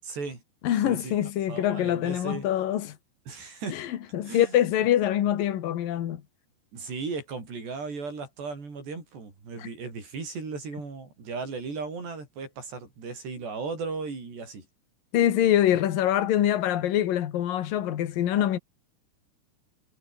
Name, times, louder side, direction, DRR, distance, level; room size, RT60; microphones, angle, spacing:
voice 1, 0.0-0.4 0.8-1.1 1.5-2.5 3.3-3.8 4.2-4.5 6.7-14.7, right 4 dB, 55° right, 9.5 m, -36 dB
voice 2, 0.6-3.0 3.7-6.2 9.6-9.7 15.1-18.6, left 11 dB, 55° left, 2.8 m, -24 dB
omnidirectional pair, 5.8 m